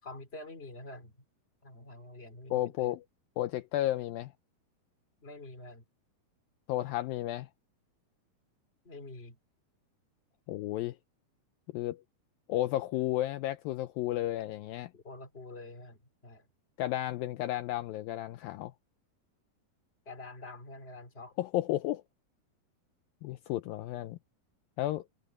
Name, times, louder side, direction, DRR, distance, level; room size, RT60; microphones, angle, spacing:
voice 1, 0.0-1.2 1.6-3.0 5.2-5.8 8.8-9.4 14.9-16.5 20.0-21.3, left 2 dB, 15° left, 3.0 m, -47 dB
voice 2, 2.5-3.0 3.4-4.3 6.7-7.5 10.5-11.0 11.7-12.0 12.5-14.9 16.8-18.7 21.4-22.0 23.2-24.2 24.8-25.1, left 14 dB, 80° left, 2.3 m, -32 dB
omnidirectional pair, 4.4 m